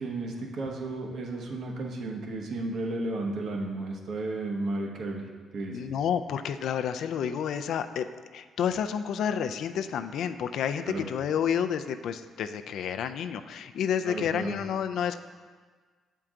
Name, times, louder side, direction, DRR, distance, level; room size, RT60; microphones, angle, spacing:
voice 1, 0.0-5.3 5.5-5.9 10.9-11.1 14.0-14.6, right 2 dB, 65° right, 1 dB, 1.0 m, -33 dB
voice 2, 5.7-8.1 8.3-15.2, left 8 dB, 75° left, 9 dB, 0.3 m, -30 dB
7.7 x 4.5 x 3.7 m, 1.5 s
cardioid pair, 90°, 0 cm